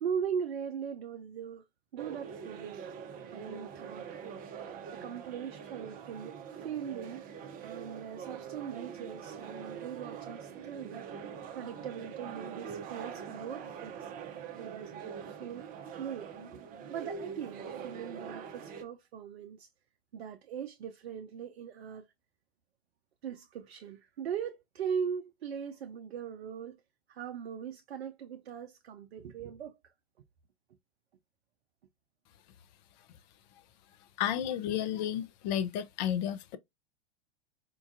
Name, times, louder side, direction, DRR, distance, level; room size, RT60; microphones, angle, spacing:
voice 1, 0.0-1.6 1.9-2.8 3.3-4.4 4.9-7.2 7.6-11.1 11.5-14.1 14.5-15.7 16.0-16.6 16.9-19.7 20.1-22.1 23.2-26.8 27.1-29.9, right 7 dB, 70° right, 0.5 m, -40 dB
sound 1, 2.0-18.8, right 7 dB, 30° right, 0.6 m, -44 dB
voice 2, 34.2-36.6, left 10 dB, 45° left, 0.6 m, -32 dB
4.4 x 2.3 x 2.5 m
figure-of-eight pair, 90°, 31 cm